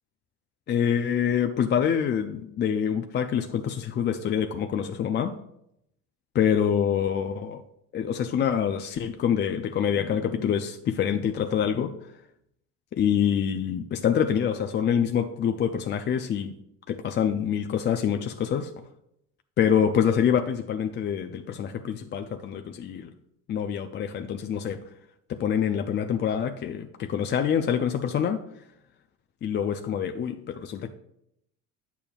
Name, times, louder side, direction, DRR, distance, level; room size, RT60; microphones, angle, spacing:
voice 1, 0.7-5.4 6.3-7.6 7.9-11.9 12.9-16.6 16.9-18.7 19.6-23.1 23.5-24.8 25.3-28.4 29.4-30.9, left 8 dB, 30° left, 6 dB, 0.4 m, -26 dB
8.6 x 7.0 x 2.4 m, 0.78 s
supercardioid pair, 90°, 36 cm